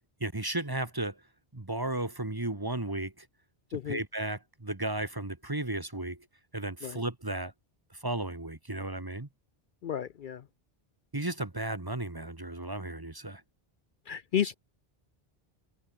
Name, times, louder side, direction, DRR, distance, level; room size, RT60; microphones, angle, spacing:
voice 1, 0.2-1.2 1.5-3.3 3.8-6.3 6.5-7.5 7.9-9.3 11.1-13.4, right 2 dB, 20° right, 1.5 m, -34 dB
voice 2, 9.8-10.4 14.1-14.6, left 9 dB, 60° left, 0.7 m, -32 dB
omnidirectional pair, 1.0 m